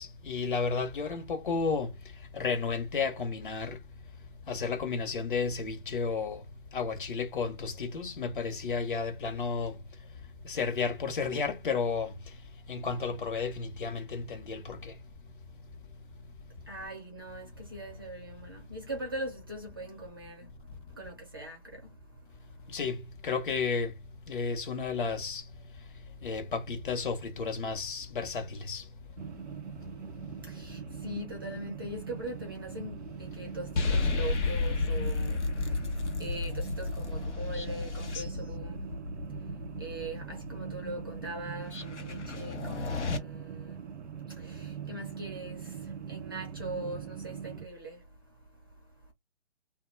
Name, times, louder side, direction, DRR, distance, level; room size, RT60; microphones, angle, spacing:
voice 1, 0.0-1.9 2.3-3.8 4.5-6.4 6.7-9.7 10.5-12.1 12.7-14.9 22.7-23.9 24.3-25.4 26.2-28.8, left 5 dB, 45° left, 0.7 m, -32 dB
voice 2, 16.7-20.5 20.9-22.7 30.4-49.1, right 1 dB, 20° right, 0.4 m, -42 dB
sound 1, 29.2-47.7, right 7 dB, 85° right, 0.6 m, -42 dB
sound 2, 33.8-43.2, left 3 dB, 85° left, 0.8 m, -33 dB
2.2 x 2.1 x 3.1 m
hypercardioid pair, 150°, 35 cm